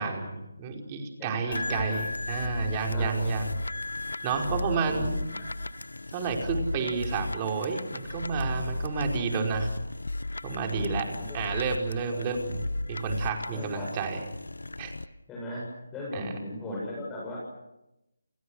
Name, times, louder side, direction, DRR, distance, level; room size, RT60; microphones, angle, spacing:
voice 1, 0.0-3.5 4.2-5.1 6.1-9.7 10.4-11.0 11.3-12.6 12.9-14.2 14.8-14.9 16.1-16.3, right 5 dB, 20° right, 2 dB, 5.1 m, -30 dB
voice 2, 1.2-2.0 2.8-3.5 4.5-5.1 5.3-5.5 10.7-11.4 13.5-13.9 15.3-15.7 15.9-17.4, left 1 dB, 10° left, -5 dB, 7.9 m, -38 dB
sound 1, 1.5-15.1, left 2 dB, 75° left, 1.3 m, -35 dB
30.0 x 29.5 x 6.5 m, 0.93 s
figure-of-eight pair, 155°, 0 cm